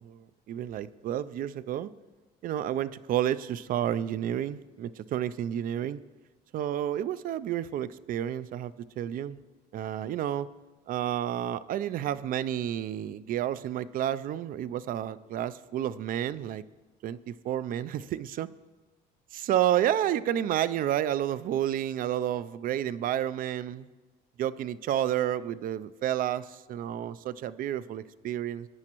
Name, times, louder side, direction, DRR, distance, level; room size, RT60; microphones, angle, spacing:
voice 1, 0.0-1.9 2.4-6.0 6.5-9.4 9.7-10.5 10.9-16.6 17.0-18.5 19.3-23.9 24.4-28.7, right 11 dB, 55° right, 16 dB, 0.4 m, -30 dB
16.0 x 9.7 x 3.0 m, 1.2 s
cardioid pair, 110°, 17 cm